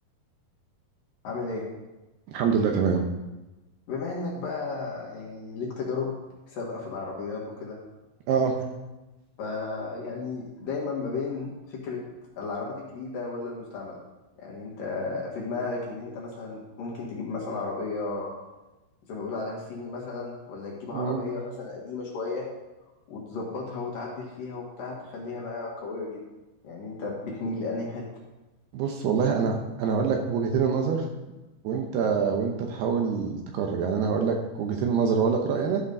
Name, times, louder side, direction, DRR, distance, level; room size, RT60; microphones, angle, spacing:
voice 1, 1.2-1.7 3.9-6.1 6.5-7.8 9.4-12.0 12.4-14.0 14.4-18.3 19.1-22.5 23.1-26.2 26.6-28.0, left 3 dB, 60° left, -3 dB, 2.7 m, -34 dB
voice 2, 2.3-3.0 8.3-8.5 20.9-21.2 28.7-31.0 31.6-35.8, right 6 dB, 75° right, 2 dB, 2.6 m, -25 dB
13.0 x 5.1 x 5.3 m, 1.1 s
omnidirectional pair, 5.2 m